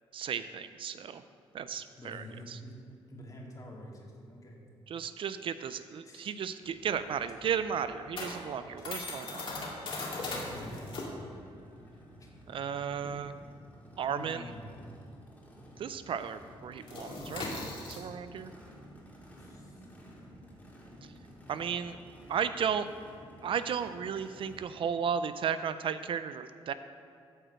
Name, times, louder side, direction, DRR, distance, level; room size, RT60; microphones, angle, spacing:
voice 1, 0.1-1.2 1.5-2.6 4.9-9.4 12.5-13.3 14.0-14.4 15.8-17.5 17.9-18.5 21.5-22.0 22.3-22.9 23.4-26.7, right 7 dB, 60° right, 12 dB, 0.4 m, -34 dB
voice 2, 1.7-2.7 3.1-4.6 6.0-6.3 6.6-6.7 7.3-7.4 10.2-11.3 12.2-12.3 13.0-13.2 14.1-14.9 19.3-19.9, left 1 dB, 35° left, -1 dB, 2.0 m, -48 dB
sound 1, 6.6-15.6 15.8-16.1 16.4-22.1, left 2 dB, 55° left, 2.2 m, -41 dB
Race car auto racing / Idling / Accelerating revving vroom, 10.1-24.6, equal, 15° left, 2.3 m, -53 dB
9.0 x 5.0 x 7.4 m, 2.4 s
cardioid pair, 95°, 10 cm